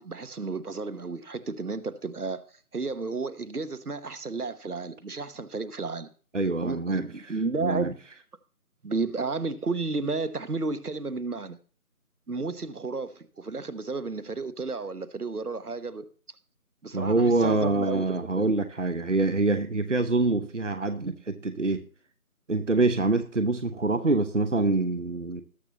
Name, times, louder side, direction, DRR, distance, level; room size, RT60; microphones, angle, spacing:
voice 1, 0.0-2.4 2.7-6.1 6.6-8.0 8.8-11.6 12.3-16.0 16.8-18.5, right 3 dB, 80° right, 1.2 m, -32 dB
voice 2, 6.3-7.3 7.6-7.9 16.9-21.8 22.5-25.4, right 3 dB, 55° right, 0.8 m, -25 dB
19.0 x 6.8 x 2.9 m
figure-of-eight pair, 175°, 45 cm